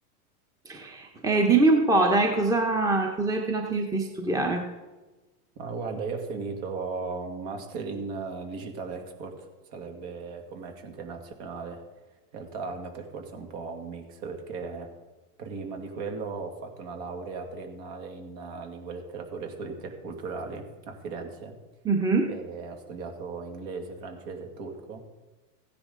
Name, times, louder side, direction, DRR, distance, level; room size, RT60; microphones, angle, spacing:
voice 1, 0.7-4.6 21.8-22.3, right 3 dB, 5° right, 3 dB, 1.0 m, -23 dB
voice 2, 5.6-11.8 12.3-14.9 15.4-21.6 22.3-25.0, right 4 dB, 55° right, 4 dB, 2.4 m, -37 dB
15.5 x 9.9 x 3.9 m, 1.2 s
supercardioid pair, 130°, 46 cm